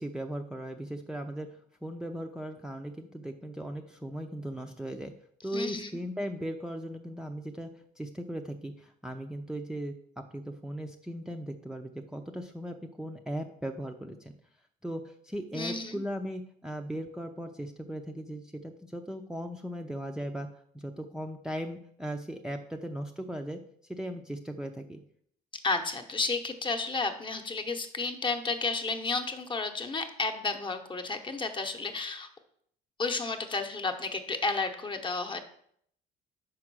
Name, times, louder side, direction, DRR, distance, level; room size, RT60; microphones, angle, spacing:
voice 1, 0.0-1.5 1.8-5.1 5.4-7.7 8.0-9.9 10.3-14.3 14.8-20.5 20.7-23.6 23.9-25.0, equal, 5° right, 3 dB, 0.5 m, -38 dB
voice 2, 5.5-6.0 15.5-16.0 25.6-32.3 33.0-35.4, left 3 dB, 30° left, 6 dB, 0.9 m, -32 dB
5.3 x 4.8 x 6.2 m, 0.66 s
cardioid pair, 110°, 17 cm